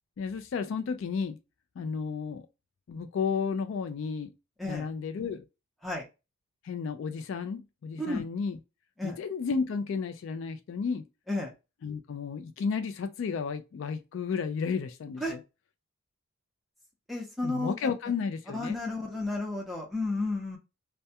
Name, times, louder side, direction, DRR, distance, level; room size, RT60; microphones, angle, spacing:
voice 1, 0.2-1.4 1.8-2.5 2.9-4.3 4.7-5.4 6.6-8.6 9.0-11.0 11.8-15.4 17.4-18.8, left 5 dB, 60° left, 0.3 m, -32 dB
voice 2, 17.1-17.7 18.5-20.6, left 2 dB, ahead, 0.6 m, -32 dB
2.2 x 2.2 x 2.6 m
head